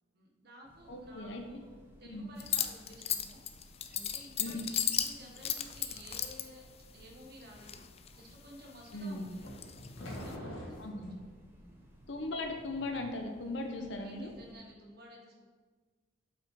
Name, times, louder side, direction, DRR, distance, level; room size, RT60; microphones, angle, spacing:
voice 1, 0.1-1.7 2.0-3.4 3.9-6.6 6.9-9.5 10.0-11.1 11.6-11.9 13.8-15.5, equal, 55° right, -1 dB, 1.5 m, -54 dB
Train, 0.6-14.5, equal, 10° right, 1.1 m, -59 dB
voice 2, 0.9-1.6 2.1-2.3 4.4-4.6 8.9-9.3 10.8-11.1 12.1-14.3, left 2 dB, 65° left, 4 dB, 1.0 m, -38 dB
sound 1, 2.4-6.4 7.4-8.2 8.6-10.3, left 9 dB, 30° left, 0.4 m, -35 dB
sound 2, 9.4-11.2, equal, 85° left, 1.6 m, -44 dB
7.5 x 5.6 x 4.9 m, 1.4 s
head